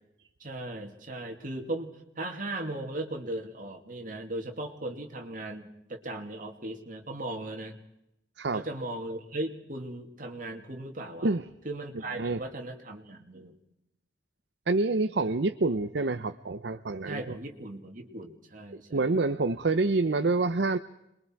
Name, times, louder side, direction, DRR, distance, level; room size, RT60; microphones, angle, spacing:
voice 1, 0.4-7.8 8.5-11.4 11.6-13.5 17.0-19.1, right 1 dB, 45° right, 3 dB, 2.6 m, -37 dB
voice 2, 14.7-17.2 18.9-20.8, right 3 dB, 60° right, 10 dB, 0.7 m, -27 dB
26.5 x 22.0 x 4.6 m, 0.85 s
head